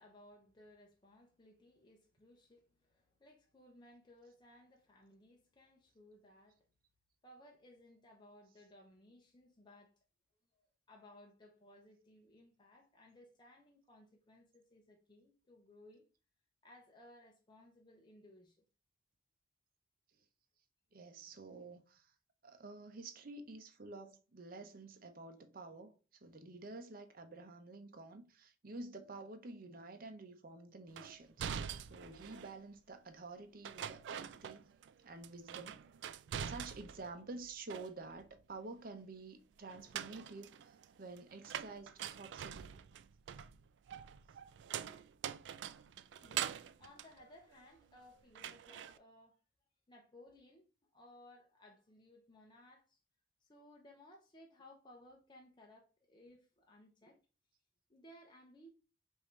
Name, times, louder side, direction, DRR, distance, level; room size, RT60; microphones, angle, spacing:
voice 1, 0.0-6.7 7.2-9.9 10.5-16.1 16.6-18.7 46.2-49.4 49.9-53.0 53.4-57.2 57.9-58.7, left 1 dB, 25° left, 0.7 m, -61 dB
voice 2, 20.9-22.1 22.4-25.9 26.2-34.6 35.0-35.8 36.4-42.7, right 3 dB, 55° right, 0.8 m, -50 dB
sound 1, 31.0-32.6 33.6-34.9 35.2-37.1 37.4-38.3 39.7-48.0 48.4-49.0, right 9 dB, 75° right, 0.3 m, -44 dB
5.4 x 2.7 x 3.1 m
head